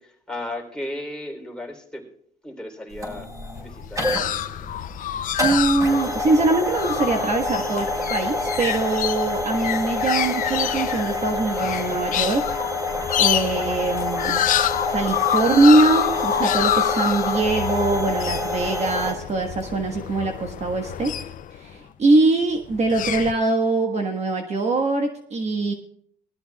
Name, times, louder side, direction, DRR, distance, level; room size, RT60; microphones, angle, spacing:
voice 1, 0.0-2.1 2.4-3.3 3.6-4.7, left 1 dB, 5° left, 1 dB, 3.4 m, -35 dB
sound 1, 2.9-19.1, left 2 dB, 20° right, 5.0 m, -27 dB
sound 2, 3.6-21.8 22.6-23.3, left 11 dB, 50° left, 0.5 m, -27 dB
voice 2, 5.4-12.6 13.2-14.4 14.9-25.7, right 2 dB, 40° right, 4 dB, 1.4 m, -22 dB
20.0 x 13.5 x 2.3 m, 0.67 s
cardioid pair, 110°, 17 cm